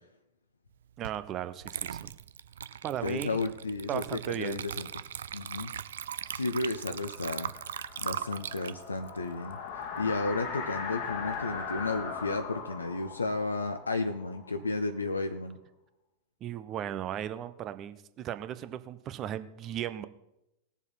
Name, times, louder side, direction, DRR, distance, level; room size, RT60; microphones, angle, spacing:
voice 1, 1.0-2.1 2.8-3.4 3.9-4.6 16.4-20.0, right 11 dB, 35° right, 12 dB, 0.8 m, -36 dB
Water / Liquid, 1.0-1.2 1.6-10.2, right 9 dB, 65° right, 0.4 m, -40 dB
voice 2, 3.0-4.9 5.3-5.7 6.3-7.5 8.0-9.6 10.0-15.6, left 3 dB, 80° left, 7 dB, 0.6 m, -33 dB
sound 1, 6.4-15.1, left 5 dB, 50° left, 1.3 m, -40 dB
19.5 x 7.2 x 4.1 m, 0.87 s
figure-of-eight pair, 90°, 0 cm